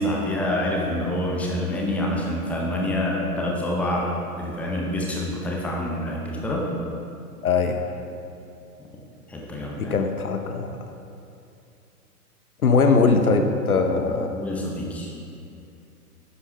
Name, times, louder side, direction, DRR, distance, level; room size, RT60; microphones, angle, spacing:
voice 1, 0.0-4.1 4.4-6.7 9.3-9.9 14.3-15.1, left 1 dB, 5° left, -2 dB, 0.6 m, -26 dB
voice 2, 7.4-7.9 9.8-10.8 12.6-14.3, left 4 dB, 65° left, 6 dB, 0.9 m, -21 dB
11.0 x 9.0 x 3.3 m, 2.6 s
figure-of-eight pair, 110°, 47 cm